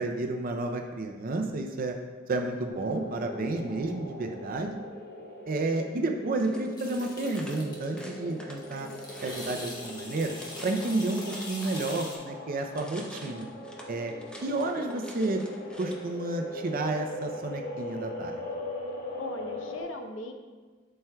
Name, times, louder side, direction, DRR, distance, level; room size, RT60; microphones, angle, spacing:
voice 1, 0.0-2.0 2.3-4.8 5.5-8.9 9.2-10.4 10.6-13.5 13.9-14.1 14.4-15.4 15.8-18.4, right 2 dB, 45° right, 4 dB, 0.5 m, -31 dB
sound 1, 2.7-19.8, left 1 dB, 50° left, 1.1 m, -40 dB
sound 2, 6.3-12.3 12.6-16.1, equal, 5° left, 0.7 m, -47 dB
sound 3, 6.8-8.0 8.3-12.2, left 1 dB, 20° left, 1.1 m, -43 dB
voice 2, 19.2-20.3, left 2 dB, 70° left, 4 dB, 0.7 m, -39 dB
11.0 x 4.4 x 2.2 m, 1.4 s
head